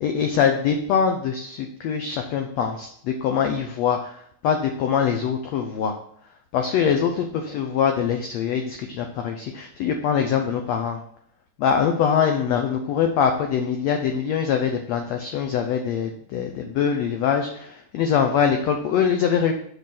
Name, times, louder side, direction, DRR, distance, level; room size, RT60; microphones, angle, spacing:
voice 1, 0.0-4.1 4.4-5.9 6.5-11.0 11.6-19.5, left 7 dB, 85° left, 5 dB, 1.5 m, -23 dB
7.5 x 5.7 x 5.8 m, 0.66 s
omnidirectional pair, 4.0 m